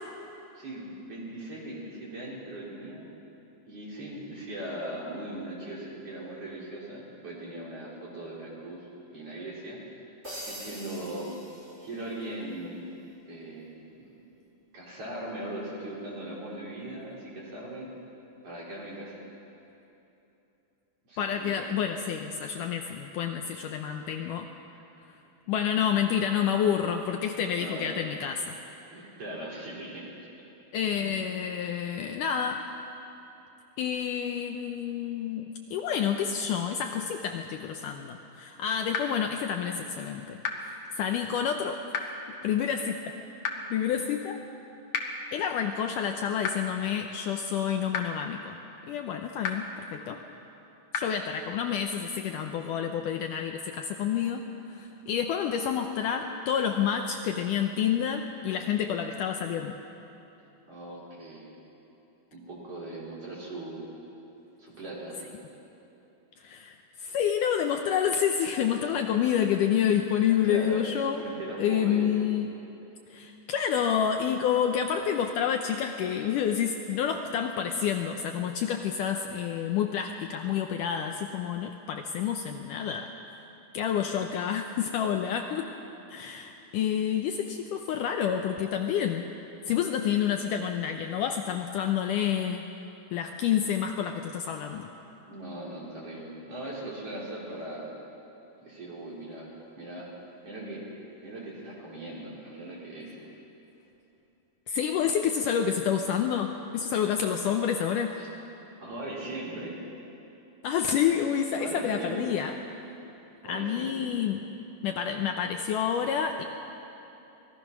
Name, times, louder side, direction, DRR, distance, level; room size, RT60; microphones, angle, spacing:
voice 1, 0.5-3.1 3.6-9.8 10.5-11.3 11.8-12.8 13.2-14.1 14.7-17.9 18.4-19.1 21.1-21.7 27.6-28.0 28.9-30.1 31.0-31.1 60.7-61.5 62.3-63.9 64.6-65.2 70.4-72.0 95.3-97.8 98.6-100.1 100.4-100.8 101.2-103.1 108.2-108.3 108.8-109.7 111.6-112.4 113.4-114.1, right 1 dB, 40° right, -5 dB, 5.1 m, -39 dB
sound 1, 10.2-12.3, equal, 15° right, 5.0 m, -43 dB
voice 2, 21.2-24.5 25.5-28.5 30.7-32.7 33.8-42.1 42.4-43.2 43.7-44.4 45.3-48.6 48.9-50.2 50.9-59.7 66.4-71.2 71.6-72.6 73.1-83.1 83.7-85.7 86.1-89.3 89.7-92.7 93.1-94.9 104.7-108.1 110.6-112.5 113.5-114.4 114.8-116.4, left 8 dB, 75° left, 4 dB, 2.1 m, -29 dB
sound 2, 38.9-39.0 40.4-40.5 41.9-42.0 43.4-43.5 44.9-45.0 46.4-46.5 47.9-48.0 49.4-49.5 50.9-51.0, left 6 dB, 55° left, 2.3 m, -29 dB
25.5 x 19.0 x 6.1 m, 2.9 s
omnidirectional pair, 4.2 m